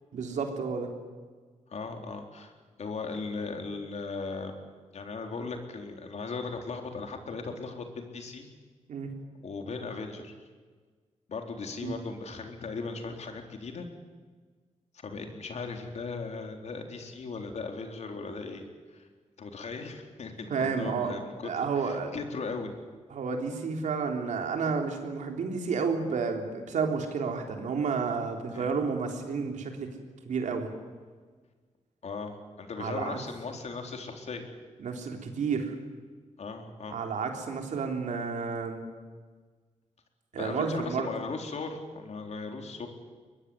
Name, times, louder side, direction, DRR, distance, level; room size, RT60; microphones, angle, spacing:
voice 1, 0.1-0.9 8.9-9.1 11.8-11.9 20.5-21.1 21.4-22.1 23.1-29.9 30.3-30.7 32.8-33.2 34.8-35.8 36.9-38.8 40.3-41.1, right 5 dB, 85° right, 3 dB, 3.7 m, -31 dB
voice 2, 1.7-2.5 2.8-4.6 4.9-8.5 9.4-10.3 11.3-13.9 15.0-18.6 18.9-19.1 19.4-22.7 28.5-28.7 32.0-34.5 36.4-37.0 40.4-42.9, left 4 dB, 65° left, 4 dB, 3.9 m, -38 dB
22.5 x 21.5 x 9.7 m, 1.5 s
cardioid pair, 90°, 12 cm